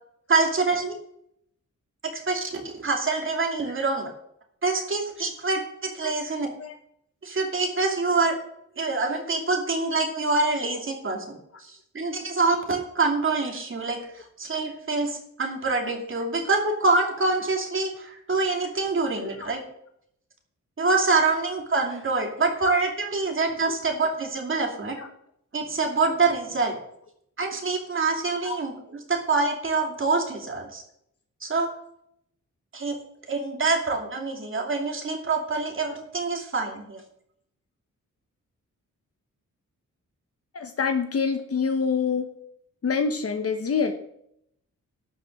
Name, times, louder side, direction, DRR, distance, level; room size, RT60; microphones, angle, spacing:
voice 1, 0.3-0.9 2.0-4.1 4.6-6.5 7.2-8.3 8.8-19.6 20.8-25.0 25.5-26.8 27.4-28.7 29.1-30.8 31.4-31.7 32.7-33.0 33.3-37.0, right 3 dB, 40° right, 2 dB, 2.6 m, -25 dB
voice 2, 40.5-42.3 42.8-43.9, left 5 dB, 50° left, 6 dB, 1.1 m, -26 dB
12.0 x 6.1 x 6.5 m, 0.72 s
wide cardioid pair, 130°, 30 cm